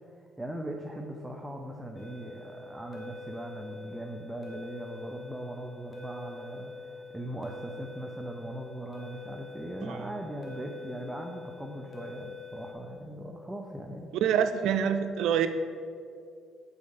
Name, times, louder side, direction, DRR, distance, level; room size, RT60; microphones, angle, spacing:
voice 1, 0.4-14.2, right 1 dB, 10° right, 1 dB, 0.6 m, -40 dB
sound 1, 2.0-12.7, left 3 dB, 40° left, 1.3 m, -45 dB
voice 2, 14.2-15.5, right 8 dB, 75° right, 9 dB, 0.4 m, -26 dB
5.7 x 4.6 x 5.3 m, 2.3 s
supercardioid pair, 75°, 0 cm